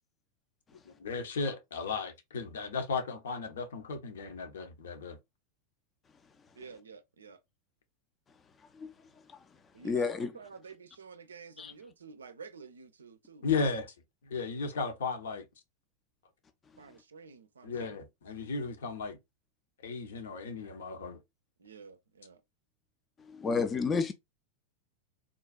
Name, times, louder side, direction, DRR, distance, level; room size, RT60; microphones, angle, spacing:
voice 1, 0.9-5.2 13.4-13.9 14.2-15.4 17.6-19.2 19.8-21.2, left 4 dB, 60° left, 0.7 m, -35 dB
voice 2, 6.6-7.4 9.7-13.5 16.8-18.0 21.6-22.4, right 5 dB, 70° right, 0.4 m, -50 dB
voice 3, 9.8-10.3 11.6-11.7 23.3-24.1, left 5 dB, 20° left, 0.4 m, -30 dB
3.6 x 2.3 x 2.3 m
figure-of-eight pair, 90°, 0 cm